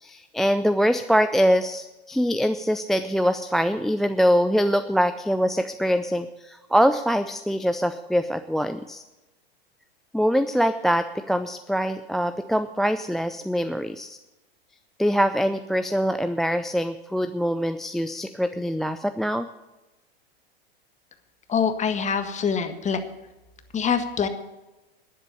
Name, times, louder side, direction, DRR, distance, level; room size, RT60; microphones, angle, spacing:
voice 1, 0.0-9.0 10.1-14.2 15.0-19.5, equal, ahead, 10 dB, 0.4 m, -23 dB
voice 2, 21.5-23.0 23.7-24.3, left 6 dB, 25° left, 8 dB, 1.6 m, -24 dB
11.5 x 10.5 x 6.9 m, 1.0 s
hypercardioid pair, 105°, 31 cm